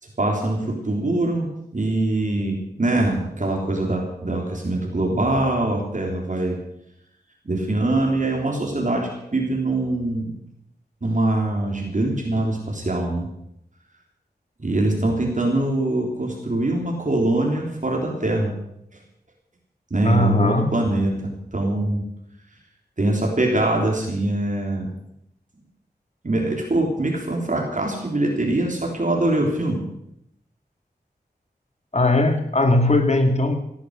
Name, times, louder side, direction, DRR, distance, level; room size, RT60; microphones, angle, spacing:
voice 1, 0.0-6.6 7.5-10.3 11.0-13.3 14.6-18.5 18.9-19.0 19.9-22.0 23.0-24.9 26.2-29.8, right 2 dB, 45° right, 0 dB, 3.5 m, -23 dB
voice 2, 20.0-20.7 31.9-33.6, left 2 dB, 40° left, 5 dB, 2.6 m, -19 dB
17.0 x 12.0 x 6.5 m, 0.78 s
wide cardioid pair, 80°, 17 cm